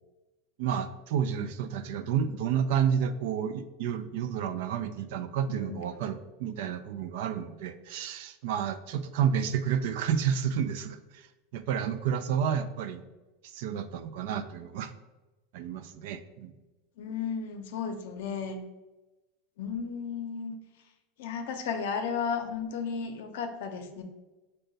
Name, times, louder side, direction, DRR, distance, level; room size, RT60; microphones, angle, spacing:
voice 1, 0.6-11.3 11.5-13.0 13.4-14.9 15.5-16.5, right 8 dB, 70° right, 11 dB, 0.3 m, -30 dB
voice 2, 5.5-6.0 17.0-18.6 19.6-20.6 21.2-24.0, left 6 dB, 75° left, 6 dB, 0.6 m, -34 dB
5.2 x 2.2 x 3.9 m, 1.1 s
supercardioid pair, 135°, 0 cm